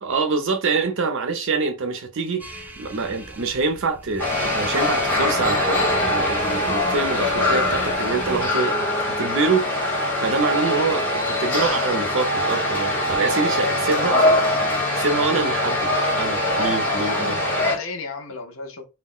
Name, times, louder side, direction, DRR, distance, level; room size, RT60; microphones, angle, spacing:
voice 1, 0.0-2.4 2.8-9.6 10.2-14.2 15.0-17.4, right 4 dB, 65° right, 0.5 m, -25 dB
sound 1, 2.4-8.5, right 1 dB, 10° right, 0.3 m, -35 dB
sound 2, 4.2-17.8, left 1 dB, 10° left, 0.9 m, -22 dB
voice 2, 13.3-13.8 16.4-18.9, left 3 dB, 70° left, 0.6 m, -32 dB
2.2 x 2.1 x 3.6 m
head